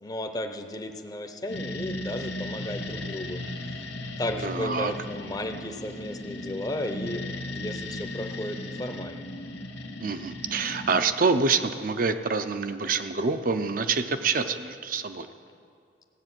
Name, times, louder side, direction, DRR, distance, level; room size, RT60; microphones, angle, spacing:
voice 1, 0.0-3.4 4.2-9.2, left 1 dB, 20° left, 5 dB, 0.6 m, -34 dB
sound 1, 1.5-11.0, left 1 dB, 75° left, 1.1 m, -36 dB
voice 2, 4.4-4.9 10.0-15.3, right 4 dB, 50° right, 9 dB, 0.6 m, -26 dB
15.5 x 7.8 x 6.1 m, 2.4 s
head